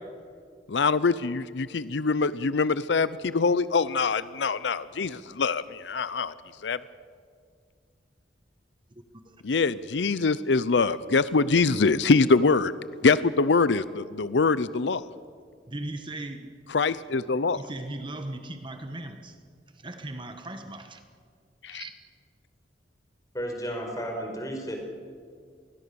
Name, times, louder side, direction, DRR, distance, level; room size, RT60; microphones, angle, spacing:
voice 1, 0.7-6.3 6.6-6.8 9.4-12.7 13.0-15.0 16.7-17.6 21.6-21.8, left 4 dB, 80° left, 16 dB, 0.6 m, -24 dB
voice 2, 15.7-16.5 17.5-19.4 19.7-21.0 21.7-22.0, right 1 dB, 25° right, 7 dB, 1.4 m, -38 dB
voice 3, 23.3-24.8, equal, 20° left, 2 dB, 5.0 m, -33 dB
27.0 x 20.5 x 7.0 m, 2.2 s
head